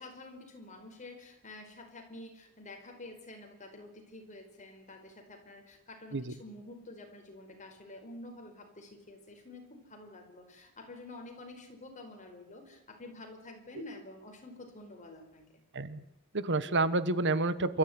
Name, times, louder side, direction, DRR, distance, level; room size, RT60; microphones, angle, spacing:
voice 1, 0.0-15.6, left 2 dB, 35° left, 4 dB, 4.9 m, -49 dB
voice 2, 16.3-17.8, right 2 dB, 55° right, 15 dB, 1.2 m, -29 dB
28.5 x 14.5 x 9.7 m, 0.85 s
head